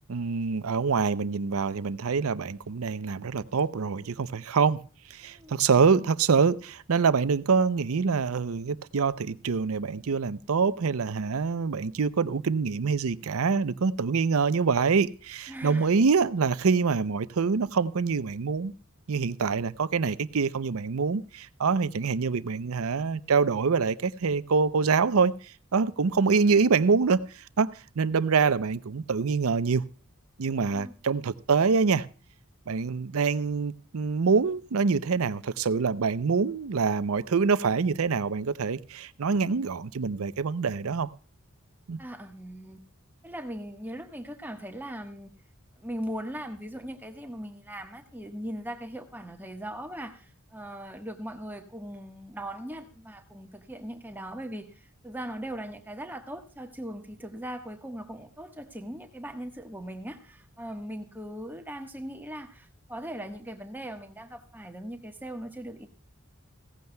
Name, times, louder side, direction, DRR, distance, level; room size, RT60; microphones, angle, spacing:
voice 1, 0.1-4.8 5.1-18.7 19.1-29.8 30.4-32.1 32.7-41.1 41.9-42.0, right 5 dB, 75° right, 0.6 m, -25 dB
voice 2, 5.2-5.6 15.5-15.9 30.7-30.9 42.0-42.8 43.2-45.3 45.8-65.9, equal, 10° right, 1.3 m, -39 dB
16.5 x 15.0 x 2.2 m
head